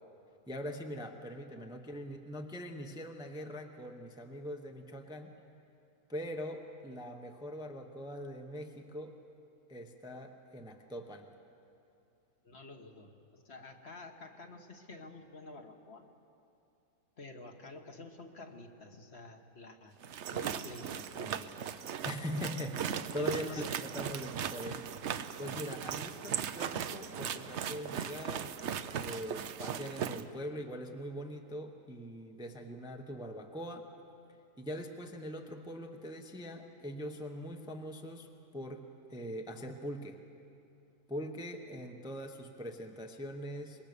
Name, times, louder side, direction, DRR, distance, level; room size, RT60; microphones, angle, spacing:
voice 1, 0.5-5.3 6.1-9.2 9.7-11.3 22.0-25.0 25.4-28.6 29.0-33.9 34.6-40.2 41.1-43.8, equal, 5° right, 4 dB, 0.9 m, -42 dB
voice 2, 12.4-16.1 17.2-20.0 20.3-21.6 23.1-24.2 25.5-25.9, left 2 dB, 45° left, 4 dB, 1.7 m, -50 dB
sound 1, 20.0-30.2, right 8 dB, 60° right, 0.9 m, -38 dB
25.5 x 21.5 x 6.8 m, 2.7 s
omnidirectional pair, 1.6 m